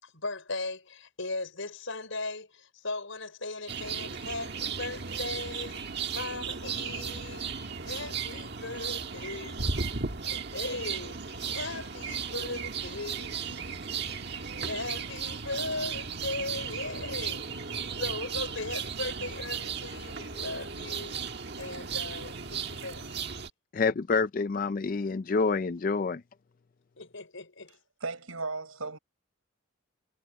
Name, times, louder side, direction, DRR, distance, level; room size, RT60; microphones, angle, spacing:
voice 1, 0.0-14.0 14.4-17.5 18.0-21.2 21.6-23.0 27.0-27.8, left 3 dB, 70° left, 5.6 m, -38 dB
sound 1, 3.7-23.5, right 6 dB, 50° right, 1.6 m, -35 dB
voice 2, 23.7-26.2, left 4 dB, 40° left, 0.4 m, -27 dB
voice 3, 28.0-29.0, right 3 dB, 80° right, 5.6 m, -35 dB
head